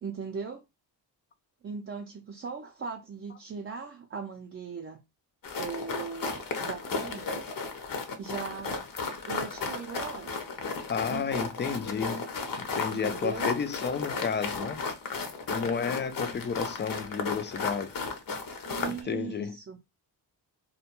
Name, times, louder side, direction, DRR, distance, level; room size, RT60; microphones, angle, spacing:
voice 1, 0.0-0.6 1.6-5.0 5.6-7.4 8.2-8.7 9.3-10.3 11.1-11.5 12.9-13.5 18.6-19.8, right 5 dB, 30° right, 0.5 m, -38 dB
sound 1, 5.4-19.0, left 4 dB, 50° left, 0.7 m, -34 dB
voice 2, 10.9-12.3 12.6-14.8 15.5-18.0 18.9-19.6, left 6 dB, 25° left, 0.4 m, -32 dB
2.3 x 2.2 x 2.9 m
cardioid pair, 65°, 44 cm